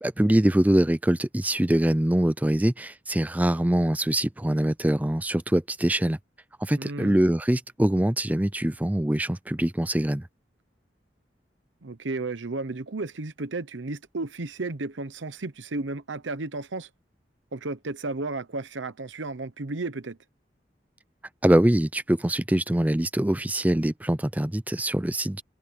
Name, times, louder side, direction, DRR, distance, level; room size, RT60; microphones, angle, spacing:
voice 1, 0.0-6.2 6.6-10.3 21.4-25.4, right 1 dB, 10° right, 0.4 m, -23 dB
voice 2, 6.8-7.2 11.8-16.9 17.5-20.2, right 3 dB, 85° right, 0.9 m, -33 dB
head